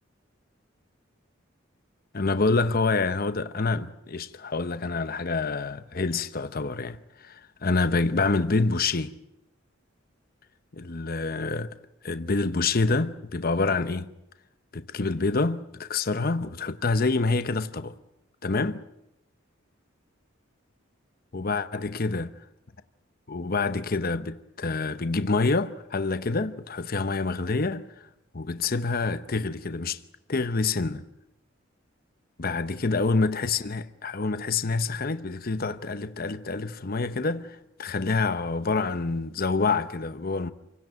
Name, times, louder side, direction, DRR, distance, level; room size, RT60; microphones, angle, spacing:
voice 1, 2.1-9.1 10.7-11.7 12.0-14.1 14.7-18.0 18.4-18.8 21.3-22.3 23.3-27.9 28.3-30.0 30.3-31.0 32.4-40.5, left 3 dB, 45° left, 0.9 m, -27 dB
27.5 x 17.0 x 9.2 m
head